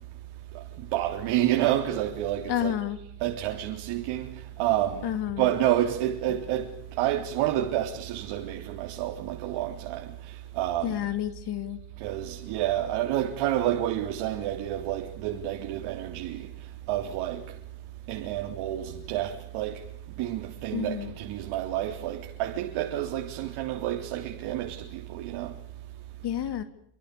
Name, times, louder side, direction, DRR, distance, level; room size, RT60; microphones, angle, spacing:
voice 1, 0.5-2.8 3.2-11.1 12.0-17.6 18.1-19.8 20.2-25.6, right 12 dB, 80° right, 3.7 m, -29 dB
voice 2, 2.5-3.0 5.0-5.5 10.8-11.8 20.7-21.1 26.2-26.6, left 11 dB, 55° left, 2.7 m, -30 dB
28.5 x 26.5 x 6.9 m
cardioid pair, 115°, 48 cm